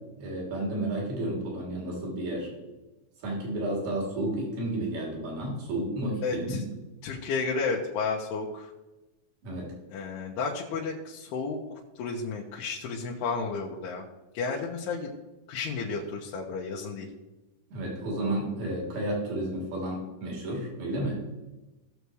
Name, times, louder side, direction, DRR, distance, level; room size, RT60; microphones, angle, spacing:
voice 1, 0.2-2.5 3.2-6.7 9.4-9.7 17.7-21.2, right 1 dB, 70° right, -3 dB, 4.8 m, -32 dB
voice 2, 6.2-6.6 7.0-8.7 9.9-11.6 12.0-14.0 14.3-15.1 15.5-17.1, left 4 dB, 85° left, -3 dB, 3.0 m, -32 dB
18.0 x 6.9 x 3.2 m, 1.1 s
omnidirectional pair, 4.5 m